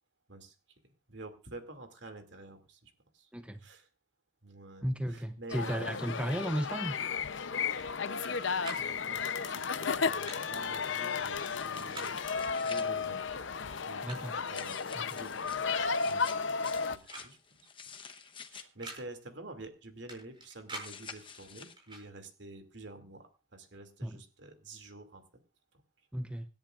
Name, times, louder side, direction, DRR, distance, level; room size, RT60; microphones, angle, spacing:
voice 1, 1.1-3.3 3.6-3.9 4.4-6.0 8.8-12.2 12.6-13.4 13.9-14.8 15.2-15.8 16.1-16.6 16.9-17.7 18.5-25.2, right 2 dB, 60° right, 6 dB, 2.5 m, -49 dB
voice 2, 4.8-7.0 14.0-14.4 14.9-15.0 24.0-24.2 26.1-26.5, equal, 5° right, 8 dB, 0.6 m, -34 dB
sound 1, 5.5-17.0, left 5 dB, 65° left, 0.7 m, -33 dB
sound 2, 7.7-8.3 8.6-8.9 10.0-10.4 11.7-12.1 13.2-13.3 13.7-14.4 15.8-15.9 16.2-16.8 17.1-17.3 17.6-17.7 18.6-19.0 20.1-20.9 21.8-22.0, right 2 dB, 25° right, 6.4 m, -46 dB
sound 3, 11.4-12.9 14.5-18.6 20.8-21.8, left 6 dB, 25° left, 1.0 m, -49 dB
26.0 x 10.5 x 2.5 m, 0.30 s
head